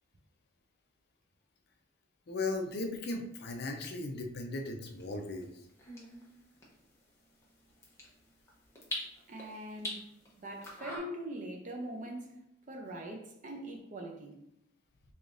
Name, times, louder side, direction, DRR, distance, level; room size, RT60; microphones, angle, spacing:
voice 1, 2.3-5.5, left 2 dB, 55° left, 0.5 m, -37 dB
sound 1, 4.8-11.0, left 1 dB, 15° left, 0.8 m, -46 dB
voice 2, 9.3-10.0 10.4-12.3 12.7-14.4, right 1 dB, 40° right, 0.5 m, -42 dB
3.6 x 3.3 x 2.6 m
head